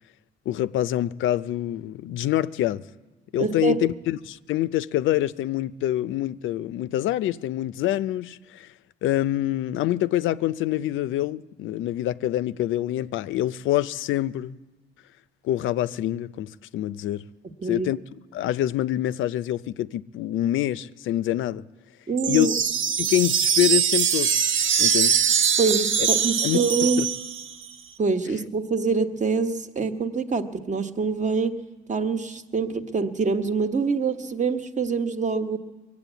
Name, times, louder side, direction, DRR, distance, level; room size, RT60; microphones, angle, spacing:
voice 1, 0.5-2.8 3.3-8.7 9.0-14.6 15.4-17.2 17.6-18.0 18.3-21.6 22.3-22.5 23.0-24.3 24.8-25.2 26.0-26.1 26.4-27.1, left 13 dB, 80° left, 0.5 m, -26 dB
voice 2, 3.4-3.8 17.6-17.9 22.1-22.5 25.6-27.1 28.0-31.6 31.9-35.6, right 4 dB, 40° right, 1.2 m, -25 dB
sound 1, 22.2-27.7, right 7 dB, 75° right, 0.9 m, -22 dB
21.5 x 8.3 x 8.2 m
cardioid pair, 90°, 20 cm